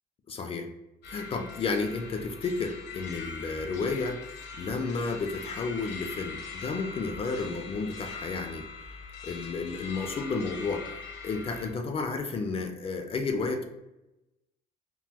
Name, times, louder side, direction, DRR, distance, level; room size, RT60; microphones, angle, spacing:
voice 1, 0.3-0.7 1.1-9.0 9.2-10.9 11.2-13.6, left 4 dB, 35° left, 5 dB, 0.4 m, -32 dB
sound 1, 1.0-11.7, left 5 dB, 75° left, 0.7 m, -42 dB
3.7 x 2.2 x 2.8 m, 0.93 s
cardioid pair, 110°, 17 cm